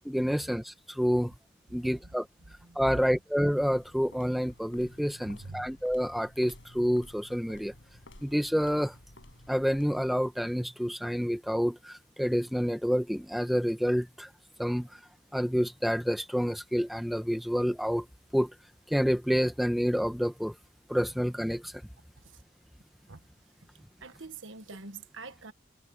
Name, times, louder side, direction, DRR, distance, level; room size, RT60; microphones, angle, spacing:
voice 1, 0.0-1.3 1.7-2.3 2.7-7.7 8.2-8.9 9.5-14.3 14.6-14.9 15.3-18.0 18.3-18.5 18.9-20.6 20.9-21.7, equal, ahead, 1.0 m, -28 dB
sound 1, 3.4-10.3, left 1 dB, 85° left, 5.2 m, -53 dB
voice 2, 5.2-5.7 22.3-22.4 23.1-23.2 24.0-25.5, right 4 dB, 85° right, 1.5 m, -45 dB
head